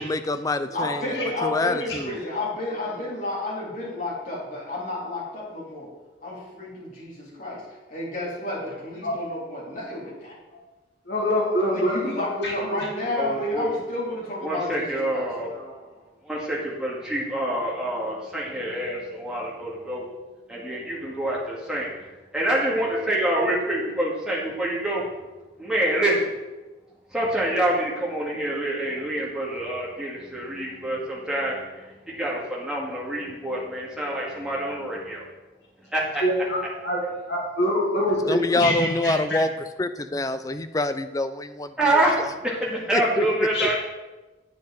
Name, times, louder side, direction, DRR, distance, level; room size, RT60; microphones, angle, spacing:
voice 1, 0.0-1.1 1.4-2.2 38.3-39.5 39.8-42.3 42.9-43.3 43.6-43.8, left 2 dB, 20° left, 10 dB, 0.4 m, -26 dB
voice 2, 0.7-5.9 6.2-7.6 7.9-10.6 11.7-16.1, left 2 dB, 45° left, -6 dB, 3.6 m, -32 dB
voice 3, 11.1-12.5 36.2-37.0 37.3-39.4 43.5-43.8, left 1 dB, 70° left, -3 dB, 2.1 m, -25 dB
voice 4, 13.2-13.7 14.4-15.5 16.2-20.1 20.5-21.9 22.3-25.1 25.6-26.3 27.1-35.3 35.9-36.2 41.8-43.8, right 1 dB, 5° right, -5 dB, 2.2 m, -26 dB
9.7 x 8.0 x 4.3 m, 1.1 s
head